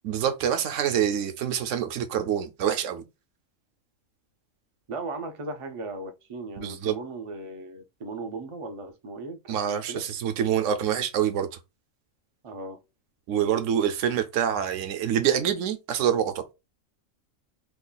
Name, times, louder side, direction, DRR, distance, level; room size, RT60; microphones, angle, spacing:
voice 1, 0.0-3.0 6.6-6.9 9.5-11.5 13.3-16.5, right 9 dB, 70° right, 0.9 m, -26 dB
voice 2, 4.9-10.0 12.4-12.8, right 2 dB, 50° right, 0.3 m, -37 dB
3.0 x 2.3 x 3.8 m
omnidirectional pair, 1.4 m